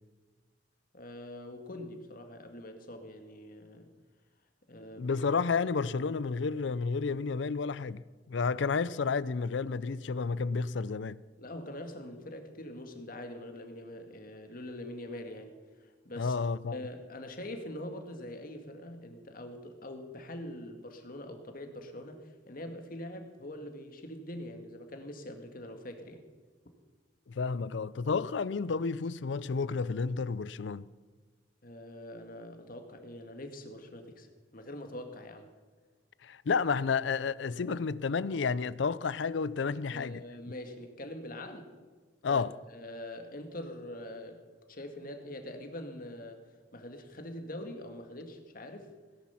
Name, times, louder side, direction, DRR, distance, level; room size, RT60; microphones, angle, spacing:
voice 1, 0.9-3.9 4.7-5.1 11.4-16.4 16.7-26.2 31.6-34.3 34.5-35.5 39.9-41.7 42.3-42.4 42.7-46.4 46.7-48.9, left 1 dB, 50° left, 1.9 m, -44 dB
voice 2, 5.0-11.2 16.2-16.8 27.3-30.9 36.2-40.2 42.2-42.5, left 5 dB, 70° left, 0.5 m, -31 dB
17.5 x 10.5 x 5.8 m
head